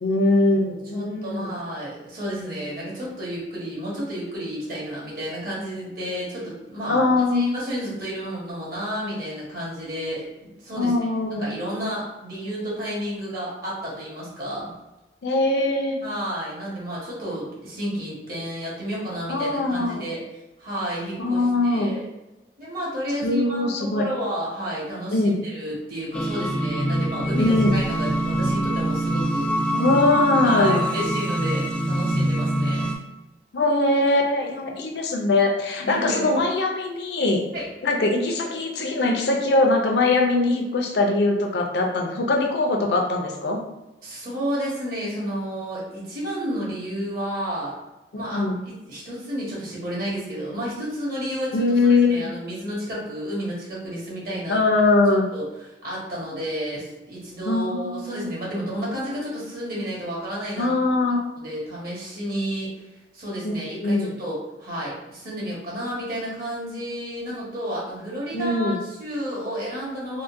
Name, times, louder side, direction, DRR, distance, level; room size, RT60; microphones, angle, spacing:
voice 1, 0.0-1.5 6.9-7.5 10.8-11.5 15.2-16.0 19.3-20.0 21.2-21.9 23.2-24.0 25.1-25.4 27.4-27.8 29.7-31.0 33.5-37.4 37.8-43.6 48.1-48.6 51.5-52.3 54.5-55.3 57.5-58.3 60.6-61.3 63.4-63.5 63.8-64.1 68.3-68.8, left 2 dB, 65° left, 2 dB, 0.5 m, -21 dB
voice 2, 0.9-10.9 11.4-14.7 16.0-20.2 20.6-22.0 22.6-25.2 25.4-29.5 30.4-32.9 35.8-36.4 37.5-37.7 44.0-47.8 48.1-51.6 52.1-54.6 55.3-55.4 55.8-60.7 61.4-62.7 63.1-70.2, equal, 55° right, -5 dB, 1.2 m, -31 dB
sound 1, 26.1-32.9, right 1 dB, 5° left, 0.3 m, -24 dB
3.7 x 2.1 x 2.5 m, 1.0 s
head